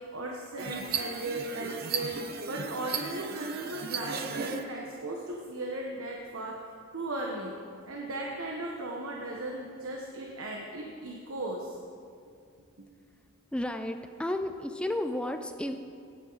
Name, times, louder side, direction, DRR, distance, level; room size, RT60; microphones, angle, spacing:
voice 1, 0.0-6.5 6.9-7.5 7.8-11.8 12.8-12.9, right 2 dB, 80° right, -1 dB, 1.2 m, -37 dB
sound 1, 0.6-4.6, right 6 dB, 45° right, 0.6 m, -36 dB
voice 2, 13.5-15.8, left 1 dB, 5° left, 6 dB, 0.5 m, -32 dB
16.5 x 8.9 x 4.0 m, 2.3 s
head